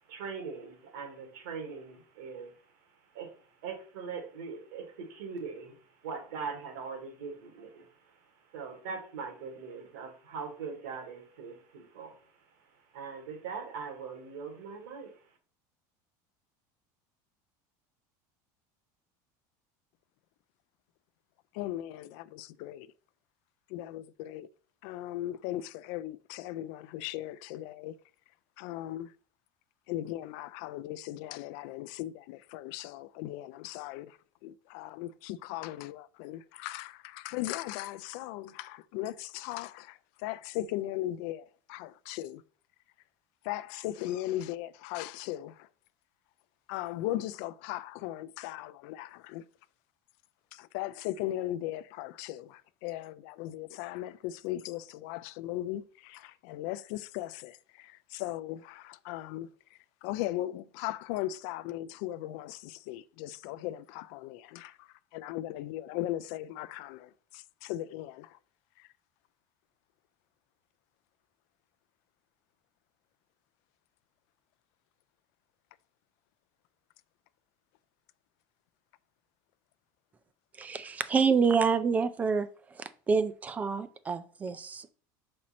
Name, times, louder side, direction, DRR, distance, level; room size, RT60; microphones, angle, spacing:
voice 1, 0.0-15.4, right 5 dB, 80° right, 2.0 m, -42 dB
voice 2, 21.5-22.9 23.7-24.5 24.8-27.9 28.6-29.1 29.9-42.4 43.4-45.7 46.7-49.4 50.5-68.4 68.8-68.9, left 14 dB, 60° left, 0.4 m, -38 dB
voice 3, 80.6-82.5 82.7-84.9, right 5 dB, 15° right, 0.3 m, -27 dB
6.1 x 4.3 x 4.2 m
cardioid pair, 165°, 10 cm